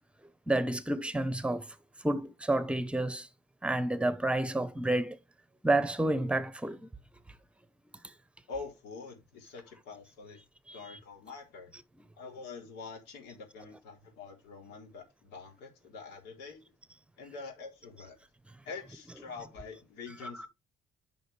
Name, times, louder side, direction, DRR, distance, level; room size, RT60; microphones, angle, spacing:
voice 1, 0.5-1.7 2.0-3.3 3.6-5.2 5.6-6.9 10.7-11.0 20.2-20.3, right 1 dB, 5° right, 1.0 m, -30 dB
voice 2, 8.5-10.4 10.7-11.7 12.2-16.6 17.2-18.2 18.6-20.5, left 4 dB, 85° left, 3.7 m, -45 dB
9.6 x 5.7 x 3.4 m
cardioid pair, 110°, 17 cm